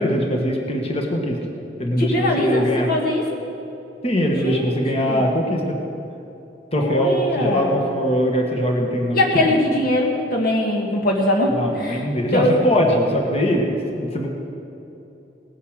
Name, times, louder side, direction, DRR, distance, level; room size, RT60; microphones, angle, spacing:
voice 1, 0.0-1.4 1.8-2.9 4.0-5.7 6.7-9.2 11.6-14.3, equal, 35° left, 2 dB, 1.7 m, -21 dB
voice 2, 2.0-3.2 4.4-5.3 6.8-7.8 9.1-12.0 12.3-12.6, left 1 dB, 55° left, 0 dB, 1.5 m, -21 dB
18.5 x 9.8 x 6.5 m, 2.9 s
head